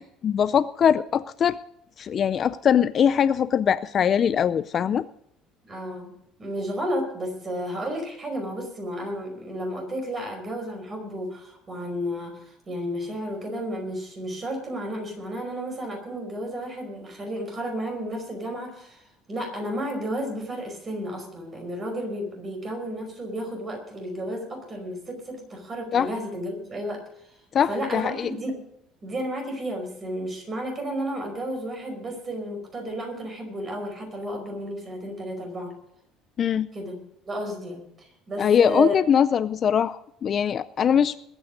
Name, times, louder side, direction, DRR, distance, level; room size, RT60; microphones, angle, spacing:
voice 1, 0.0-1.6 2.0-5.0 25.9-26.1 27.5-28.3 36.4-36.7 38.4-41.2, left 8 dB, 35° left, 14 dB, 0.4 m, -22 dB
voice 2, 5.6-6.1 6.4-27.0 27.3-27.4 27.7-28.6 29.0-35.7 36.7-36.9 37.2-39.0, equal, 25° right, 4 dB, 4.9 m, -32 dB
21.0 x 9.0 x 5.2 m, 0.74 s
cardioid pair, 155°, 0 cm